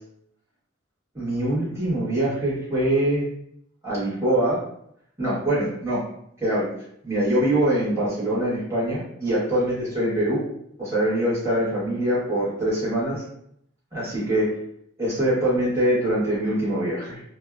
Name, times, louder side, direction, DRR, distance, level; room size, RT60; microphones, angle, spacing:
voice 1, 1.1-3.2 3.8-4.6 5.2-6.0 6.4-6.7 7.0-10.4 10.8-13.2 13.9-14.6 15.0-17.2, right 1 dB, 15° right, -10 dB, 1.1 m, -23 dB
2.6 x 2.1 x 2.3 m, 0.71 s
head